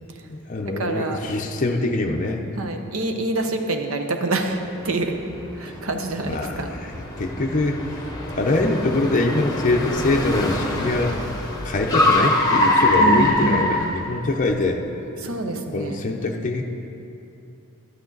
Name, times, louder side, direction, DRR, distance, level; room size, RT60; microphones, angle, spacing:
voice 1, 0.3-2.4 6.2-8.0 8.4-11.2 11.6-14.8 15.7-16.6, left 2 dB, 35° left, 1 dB, 0.6 m, -23 dB
voice 2, 0.8-1.2 2.6-4.6 4.8-5.2 5.6-6.7 13.0-13.9 15.2-16.0, right 2 dB, 75° right, 5 dB, 0.8 m, -26 dB
Car, 4.7-14.5, left 1 dB, 20° left, 1.1 m, -24 dB
11.5 x 8.7 x 3.9 m, 2.8 s
head